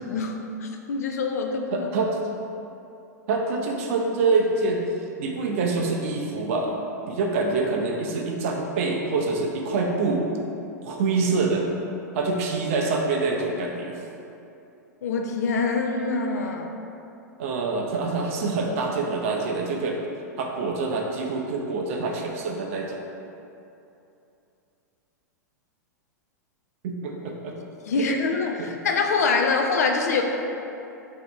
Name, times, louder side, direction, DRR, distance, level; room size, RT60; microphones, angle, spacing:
voice 1, 0.0-1.9 15.0-16.7 27.9-30.2, left 4 dB, 60° left, 3 dB, 0.4 m, -25 dB
voice 2, 1.7-2.2 3.3-4.9 5.2-6.8 7.1-10.3 10.8-11.7 12.1-14.0 17.4-20.0 20.4-23.0 26.8-27.6 27.9-28.1 28.6-28.7, right 3 dB, 50° right, 0 dB, 0.5 m, -26 dB
3.3 x 2.7 x 4.0 m, 2.8 s
figure-of-eight pair, 100°, 10 cm